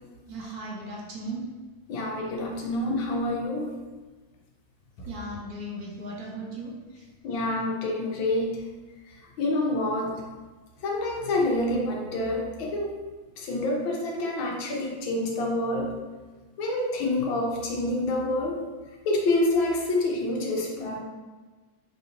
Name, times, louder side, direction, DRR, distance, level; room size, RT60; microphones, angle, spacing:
voice 1, 0.3-1.5 5.0-7.0, right 1 dB, 60° right, -2 dB, 1.1 m, -37 dB
voice 2, 1.9-3.8 7.2-8.5 9.4-10.1 10.8-12.9 13.4-15.9 16.6-18.6 19.0-21.0, left 2 dB, 80° left, -1 dB, 1.5 m, -27 dB
5.7 x 2.8 x 2.5 m, 1.3 s
omnidirectional pair, 2.1 m